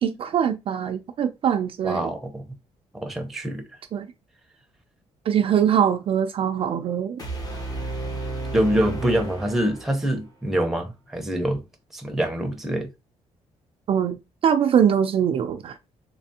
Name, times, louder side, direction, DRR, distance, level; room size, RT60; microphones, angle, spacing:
voice 1, 0.0-2.1 3.9-4.1 5.3-7.2 13.9-15.8, right 8 dB, 50° right, 0.4 m, -22 dB
voice 2, 1.8-2.4 2.9-3.6 8.5-11.6 11.9-12.9, right 1 dB, 5° right, 0.7 m, -25 dB
sound 1, 7.2-10.3, right 2 dB, 30° left, 0.9 m, -32 dB
3.3 x 3.2 x 2.8 m
cardioid pair, 135°, 12 cm